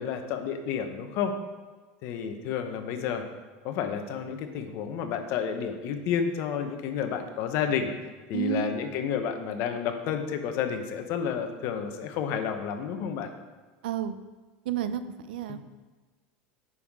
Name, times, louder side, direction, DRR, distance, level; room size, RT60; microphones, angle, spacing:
voice 1, 0.0-1.3 2.0-3.2 3.6-7.9 8.3-13.3 15.5-15.6, left 7 dB, 60° left, 7 dB, 1.0 m, -30 dB
voice 2, 8.3-8.7 13.8-14.2 14.7-15.6, right 9 dB, 85° right, 11 dB, 0.5 m, -30 dB
9.5 x 5.7 x 3.7 m, 1.3 s
supercardioid pair, 115°, 5 cm